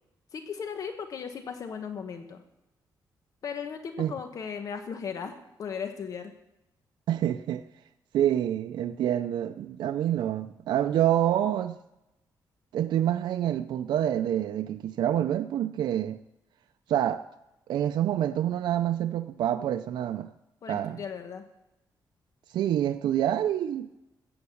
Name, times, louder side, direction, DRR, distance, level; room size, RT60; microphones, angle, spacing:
voice 1, 0.3-2.4 3.4-5.3 5.6-6.3 20.6-21.4, left 6 dB, 50° left, 1.0 m, -36 dB
voice 2, 7.1-7.6 8.1-11.8 12.7-16.2 16.9-17.2 17.7-20.3 20.7-21.0 22.5-23.9, right 11 dB, 85° right, 0.5 m, -27 dB
15.0 x 8.0 x 7.1 m
wide cardioid pair, 170°, 8 cm